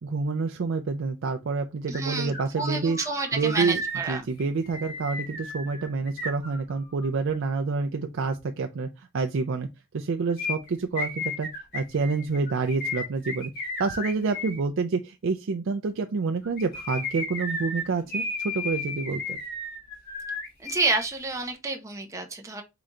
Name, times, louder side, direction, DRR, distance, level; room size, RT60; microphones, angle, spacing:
voice 1, 0.0-3.0 3.3-3.8 4.1-9.7 9.9-11.5 11.7-19.4, right 4 dB, 60° right, 0.4 m, -28 dB
sound 1, 1.9-2.0 2.3-7.1 10.4-14.6 16.4-21.0 21.3-21.4, left 2 dB, 45° left, 2.2 m, -34 dB
voice 2, 1.9-4.3 20.6-22.6, right 3 dB, 15° right, 0.7 m, -29 dB
3.9 x 3.3 x 3.7 m
head